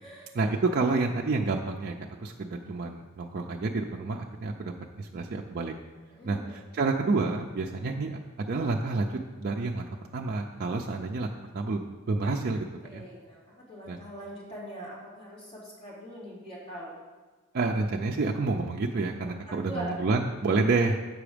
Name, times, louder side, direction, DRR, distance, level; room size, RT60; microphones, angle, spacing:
voice 1, 0.3-4.7 5.0-5.7 6.2-9.8 10.1-11.3 11.5-12.6 12.9-13.0 13.9-14.0 17.5-21.0, right 3 dB, 45° right, 0 dB, 0.4 m, -29 dB
voice 2, 6.1-6.7 12.8-16.9 19.2-20.0, right 1 dB, 30° left, -7 dB, 2.7 m, -42 dB
7.6 x 6.0 x 5.0 m, 1.4 s
head